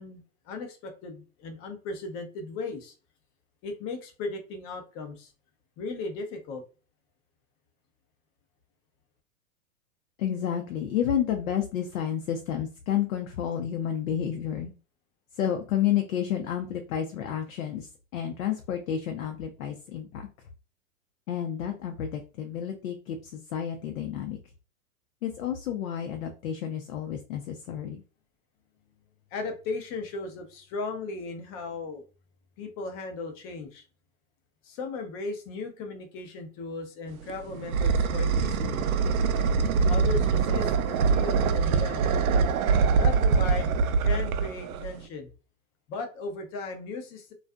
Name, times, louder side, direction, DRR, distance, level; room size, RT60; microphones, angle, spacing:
voice 1, 0.0-2.9 3.6-5.3 5.8-6.6 29.3-32.0 32.6-33.8 34.6-38.8 39.9-42.1 42.9-45.3 45.9-47.3, left 3 dB, 30° left, 5 dB, 0.6 m, -36 dB
voice 2, 10.2-14.7 15.4-20.2 21.3-24.4 25.2-28.0, left 9 dB, 70° left, 4 dB, 0.6 m, -30 dB
sound 1, 37.1-45.1, right 5 dB, 75° right, 0.5 m, -24 dB
2.6 x 2.3 x 2.2 m, 0.35 s
hypercardioid pair, 115°, 43 cm